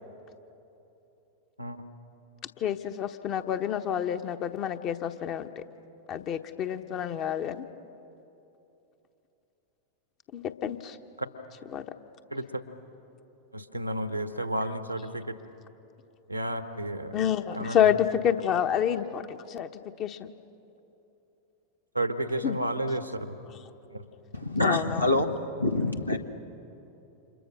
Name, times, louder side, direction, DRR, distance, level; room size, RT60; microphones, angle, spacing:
voice 1, 2.6-5.6 6.1-7.6 10.3-11.0 11.7-11.9 17.1-20.3 22.4-22.6 24.6-25.1, left 9 dB, 35° left, 8 dB, 1.1 m, -28 dB
voice 2, 12.3-12.6 13.5-15.3 16.3-17.2 17.5-17.9 21.9-23.3 23.9-24.0, right 1 dB, 90° right, 10 dB, 1.3 m, -32 dB
voice 3, 24.3-26.2, left 2 dB, 85° left, 5 dB, 1.3 m, -26 dB
29.5 x 27.0 x 6.4 m, 3.0 s
figure-of-eight pair, 90°, 0 cm